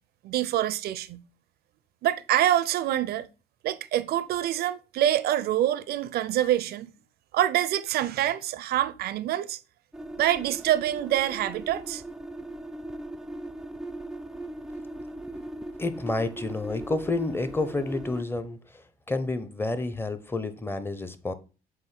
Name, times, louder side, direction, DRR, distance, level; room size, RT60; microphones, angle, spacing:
voice 1, 0.2-1.2 2.0-3.3 3.6-6.9 7.3-9.6 10.2-12.0, right 12 dB, 70° right, 0.6 m, -26 dB
sound 1, 9.9-18.2, right 1 dB, 5° right, 0.4 m, -39 dB
voice 2, 15.8-21.3, left 2 dB, 15° left, 0.8 m, -30 dB
7.8 x 2.6 x 5.7 m
cardioid pair, 110°, 17 cm